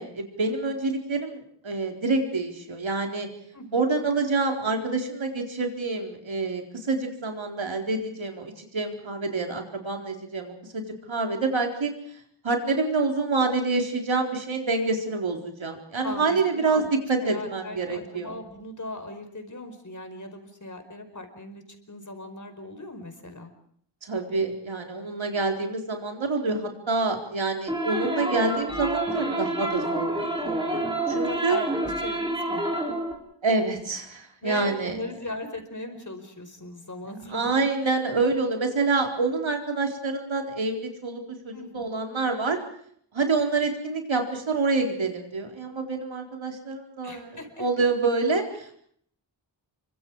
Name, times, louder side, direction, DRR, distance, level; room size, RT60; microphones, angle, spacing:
voice 1, 0.0-3.3 3.7-11.9 12.4-16.8 17.1-18.4 24.0-31.6 33.4-35.0 37.3-42.6 43.1-47.3 47.6-48.7, right 3 dB, 85° right, 3 dB, 4.3 m, -27 dB
voice 2, 3.5-3.8 16.0-16.9 17.2-23.5 31.1-32.9 34.4-37.6 41.5-41.9 47.0-47.7, left 2 dB, 40° left, 6 dB, 4.9 m, -38 dB
sound 1, 27.7-33.1, right 1 dB, 10° right, 4.7 m, -28 dB
29.0 x 24.5 x 4.8 m, 0.64 s
wide cardioid pair, 85°, 45 cm